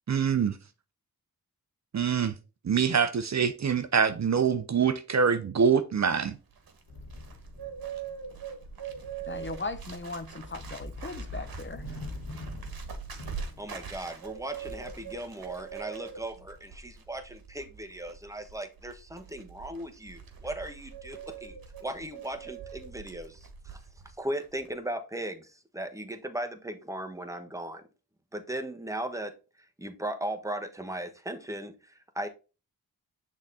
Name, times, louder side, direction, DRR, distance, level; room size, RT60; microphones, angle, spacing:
voice 1, 0.1-0.5 1.9-2.4 2.6-6.4, right 6 dB, 45° right, 0.6 m, -25 dB
Bird, 6.3-24.1 24.4-24.7, right 7 dB, 65° right, 1.3 m, -43 dB
sound 1, 6.9-17.1, left 2 dB, 80° left, 1.4 m, -45 dB
voice 2, 9.3-11.8, left 3 dB, 30° left, 0.8 m, -38 dB
voice 3, 13.6-23.8 24.2-27.8 28.3-29.3 29.8-32.3, right 1 dB, 10° right, 1.1 m, -37 dB
6.3 x 3.7 x 4.1 m
cardioid pair, 50°, 38 cm